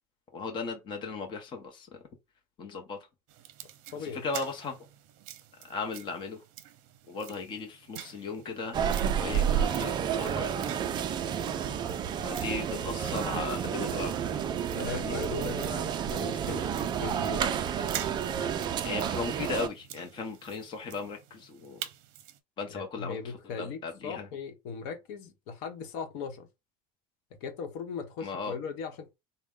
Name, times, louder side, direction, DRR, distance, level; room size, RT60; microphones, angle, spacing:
voice 1, 0.3-2.0 2.6-3.0 4.0-4.8 5.6-6.4 7.1-8.8 9.1-10.8 12.2-14.2 14.9-15.2 18.8-21.8 22.6-24.3 28.2-28.6, left 4 dB, 25° left, 0.7 m, -37 dB
sound 1, 3.3-22.4, right 12 dB, 70° right, 0.6 m, -48 dB
voice 2, 3.9-4.2 14.7-17.5 22.7-26.5 27.4-29.1, left 5 dB, 65° left, 1.0 m, -38 dB
sound 2, 8.7-19.7, right 8 dB, 25° right, 0.3 m, -30 dB
4.0 x 2.1 x 3.6 m
cardioid pair, 155°, 18 cm